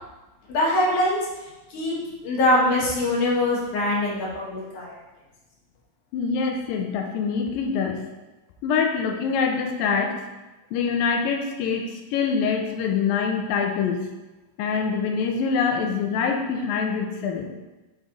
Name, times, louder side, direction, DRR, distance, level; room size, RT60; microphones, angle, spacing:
voice 1, 0.5-1.2 1.7-2.0 2.2-5.0, left 1 dB, 65° left, -4 dB, 2.6 m, -23 dB
voice 2, 6.1-8.0 8.6-10.2 10.7-14.1 14.6-17.5, left 5 dB, 85° left, 3 dB, 2.4 m, -25 dB
7.2 x 4.1 x 3.8 m, 1.1 s
omnidirectional pair, 4.0 m